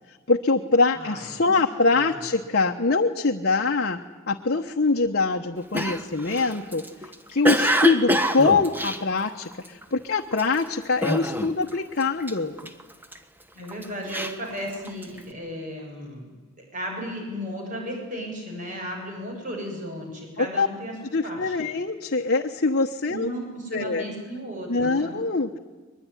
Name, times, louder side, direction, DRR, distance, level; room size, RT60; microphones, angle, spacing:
voice 1, 0.3-4.0 4.3-6.8 7.3-12.7 20.4-20.7 21.1-23.3 23.7-24.0 24.7-25.6, left 3 dB, 50° left, 2 dB, 1.1 m, -24 dB
voice 2, 1.0-1.5 1.9-2.1 13.5-16.4 16.7-20.9 21.2-21.7 23.1-25.1, equal, 35° right, 1 dB, 7.2 m, -35 dB
Cough, 5.7-9.8 10.3-10.6 11.0-11.7 12.0-13.2 13.7-15.2, equal, 10° right, 1.2 m, -25 dB
22.5 x 21.5 x 9.9 m, 1.3 s
head